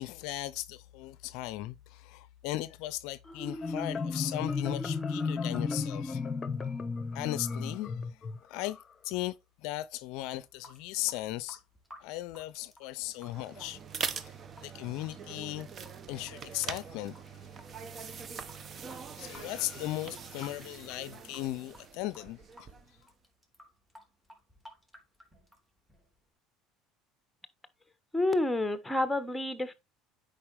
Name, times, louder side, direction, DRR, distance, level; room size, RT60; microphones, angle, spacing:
voice 1, 0.0-6.3 7.1-8.2 8.5-8.8 9.0-11.6 12.0-13.8 14.2-14.3 14.6-15.7 16.1-17.2 19.1-22.7, left 16 dB, 70° left, 0.4 m, -37 dB
Marimba xylophone, 3.3-8.8, left 4 dB, 30° left, 0.9 m, -34 dB
Water tap faucet / Sink (filling or washing) / Drip, 10.4-26.3, left 1 dB, 10° right, 3.5 m, -57 dB
sound 1, 13.1-23.0, right 6 dB, 40° right, 0.9 m, -43 dB
voice 2, 28.1-29.7, left 2 dB, 5° left, 1.3 m, -29 dB
8.6 x 5.3 x 3.4 m
hypercardioid pair, 80°, 0 cm